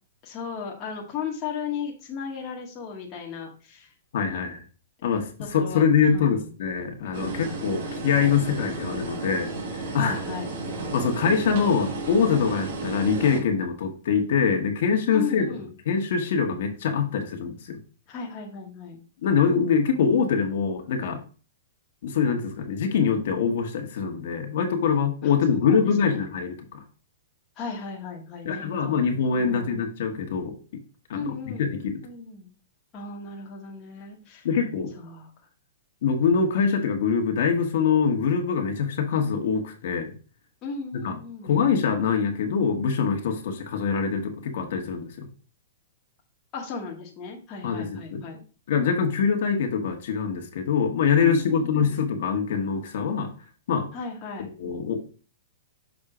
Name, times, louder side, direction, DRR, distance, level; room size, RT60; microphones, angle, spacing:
voice 1, 0.2-3.9 5.4-6.5 10.0-10.6 15.1-15.7 18.1-19.0 25.2-26.2 27.6-29.9 31.1-31.7 32.0-32.5 32.9-34.5 35.0-35.3 40.6-41.6 46.5-48.4 51.2-52.0 53.9-54.5, left 6 dB, 20° left, -2 dB, 1.2 m, -36 dB
voice 2, 4.1-4.6 5.0-10.2 10.9-15.5 15.8-17.8 19.2-21.2 22.0-26.8 28.4-30.5 31.1-32.0 34.4-34.9 36.0-40.1 41.0-41.1 41.4-45.3 47.6-48.2 48.7-53.3 53.7-53.9 54.4-55.0, left 6 dB, 50° left, 3 dB, 1.3 m, -24 dB
sound 1, 7.1-13.4, right 3 dB, 45° right, 1.6 m, -33 dB
6.3 x 3.6 x 4.9 m, 0.36 s
hypercardioid pair, 175°, 0 cm